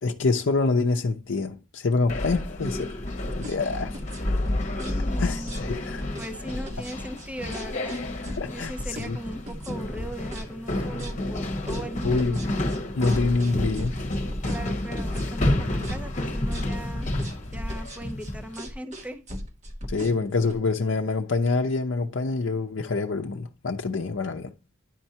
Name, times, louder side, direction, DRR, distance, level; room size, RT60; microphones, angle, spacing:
voice 1, 0.0-2.9 3.4-4.0 5.2-6.0 8.4-8.7 9.0-9.2 12.0-12.4 12.9-14.0 19.9-24.5, left 3 dB, 60° left, 0.6 m, -26 dB
sound 1, 2.1-18.6, left 1 dB, 35° left, 1.2 m, -30 dB
sound 2, 3.2-20.5, equal, 35° right, 1.2 m, -38 dB
voice 2, 4.8-8.0 8.5-12.4 14.5-17.1 17.5-19.2, equal, 5° right, 0.6 m, -39 dB
11.0 x 4.4 x 2.8 m
head